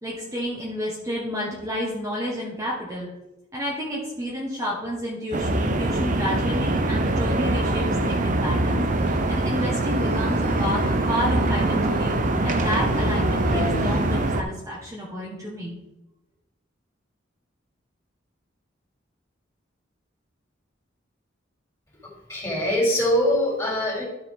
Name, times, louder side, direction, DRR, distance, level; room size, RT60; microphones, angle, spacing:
voice 1, 0.0-3.1 3.5-12.2 12.4-15.7, equal, 15° right, -6 dB, 1.5 m, -30 dB
sound 1, 5.3-7.0 8.9-14.3, left 1 dB, 55° left, 1.1 m, -37 dB
sound 2, 5.3-14.4, right 2 dB, 45° right, 0.7 m, -23 dB
voice 2, 22.3-24.0, equal, 15° left, -4 dB, 3.4 m, -22 dB
12.5 x 5.1 x 3.8 m, 0.96 s
head